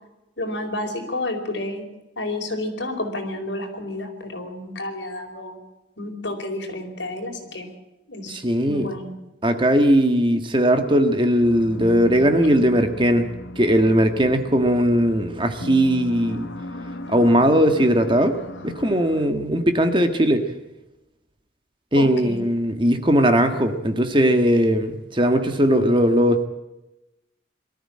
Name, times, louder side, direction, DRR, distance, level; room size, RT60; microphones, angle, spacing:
voice 1, 0.4-1.8 2.2-5.6 6.0-7.7 8.1-8.4 8.6-9.2 21.9-22.4, left 1 dB, 70° left, 3 dB, 4.8 m, -30 dB
voice 2, 8.3-8.9 9.4-13.3 13.5-16.5 17.1-18.3 18.6-20.4 21.9-26.5, equal, 25° right, 7 dB, 1.7 m, -19 dB
sound 1, 11.4-19.3, left 1 dB, 85° left, 1.7 m, -37 dB
22.5 x 14.0 x 8.7 m, 0.96 s
head